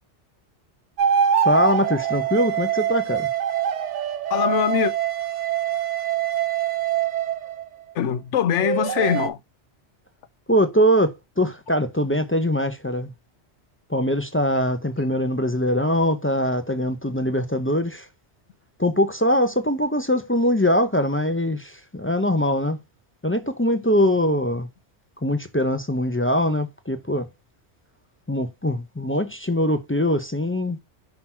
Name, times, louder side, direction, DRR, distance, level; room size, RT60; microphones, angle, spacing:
sound 1, 1.0-7.7 8.6-9.3, right 9 dB, 90° right, 1.0 m, -24 dB
voice 1, 1.4-3.3 10.5-13.1 13.9-18.1 18.8-22.8 23.2-24.7 25.2-27.3 28.3-30.8, equal, 15° left, 0.4 m, -22 dB
voice 2, 4.3-4.9 7.9-9.4, left 9 dB, 85° left, 1.0 m, -22 dB
5.8 x 3.9 x 4.3 m
omnidirectional pair, 1.2 m